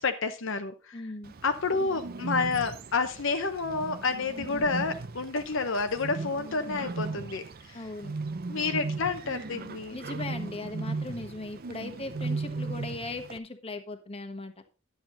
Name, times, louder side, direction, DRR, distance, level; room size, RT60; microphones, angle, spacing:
voice 1, 0.0-1.0 1.4-7.8 8.5-10.0, left 4 dB, 65° left, 7 dB, 0.8 m, -29 dB
voice 2, 0.9-1.3 7.7-8.1 9.9-14.5, left 2 dB, 30° left, 6 dB, 1.3 m, -38 dB
Bird, 1.2-13.4, right 3 dB, 45° right, 0.6 m, -37 dB
11.0 x 8.0 x 4.0 m, 0.31 s
head